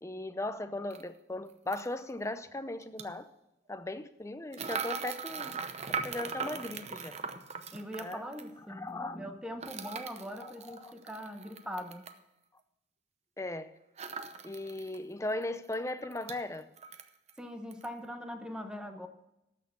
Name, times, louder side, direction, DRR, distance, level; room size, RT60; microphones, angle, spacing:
voice 1, 0.0-3.3 3.7-5.6 6.0-7.2 8.0-8.3 8.7-9.3 10.4-10.9 13.4-13.7 14.4-16.7, left 2 dB, 15° left, 0.6 m, -38 dB
sound 1, 0.9-1.0 1.7-1.9 2.8-3.1 4.5-8.5 9.6-12.2 14.0-15.0 15.3-15.4 15.7-16.4 16.8-17.4 17.7-17.9, right 5 dB, 35° right, 0.7 m, -39 dB
voice 2, 7.7-8.9 9.2-12.1 17.4-19.1, equal, 5° right, 0.9 m, -41 dB
12.5 x 6.6 x 7.0 m
head